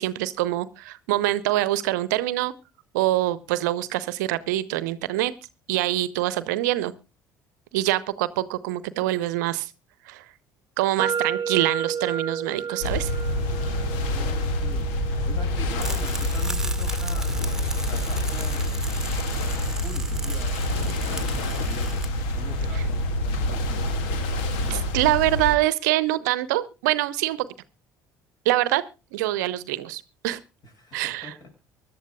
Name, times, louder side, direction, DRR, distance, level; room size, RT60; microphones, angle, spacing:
voice 1, 0.0-2.5 2.9-5.3 5.7-6.9 7.7-9.7 10.1-10.2 10.8-13.1 22.7-22.8 24.7-27.5 28.4-28.8 29.1-30.4 30.9-31.3, right 16 dB, 70° right, 17 dB, 0.8 m, -25 dB
sound 1, 11.0-18.9, right 6 dB, 40° right, 0.7 m, -33 dB
sound 2, 12.8-25.6, left 1 dB, 65° left, 1.9 m, -27 dB
voice 2, 14.0-14.9 15.2-19.0 19.5-24.1 30.6-31.5, left 1 dB, 45° left, 5 dB, 6.7 m, -43 dB
sound 3, 15.8-22.1, right 2 dB, 5° right, 1.7 m, -37 dB
24.0 x 12.0 x 2.3 m, 0.28 s
figure-of-eight pair, 55°, 10 cm